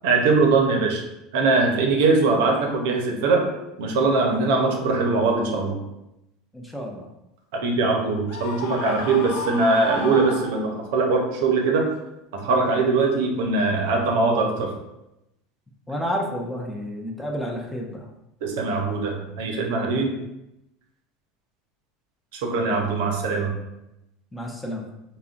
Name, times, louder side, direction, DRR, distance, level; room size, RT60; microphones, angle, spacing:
voice 1, 0.0-1.0 1.3-3.5 3.8-5.8 7.6-11.9 12.3-14.7 18.4-20.1 22.4-23.5, right 3 dB, 70° right, 1 dB, 0.5 m, -21 dB
voice 2, 6.5-7.1 8.9-9.1 15.9-18.1 20.1-20.2 24.3-24.8, equal, 10° left, 0 dB, 0.6 m, -31 dB
Screaming, 8.3-11.0, left 3 dB, 70° left, 0.4 m, -33 dB
3.6 x 2.1 x 2.4 m, 0.89 s
hypercardioid pair, 85°, 0 cm